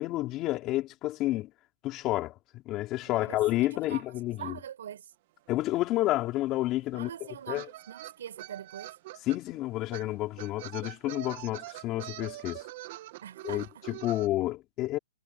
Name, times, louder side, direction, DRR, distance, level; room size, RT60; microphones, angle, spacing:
voice 1, 0.0-1.5 1.8-4.6 5.5-7.7 9.3-12.6 13.4-15.0, left 16 dB, 25° left, 3.1 m, -30 dB
voice 2, 3.0-4.0 4.3-5.1 6.9-8.9 13.2-13.8, right 9 dB, 65° right, 5.5 m, -43 dB
sound 1, 5.8-5.9 6.1-9.4 9.9-10.1 10.4-14.3, right 17 dB, 40° right, 1.5 m, -44 dB
hypercardioid pair, 150°, 0 cm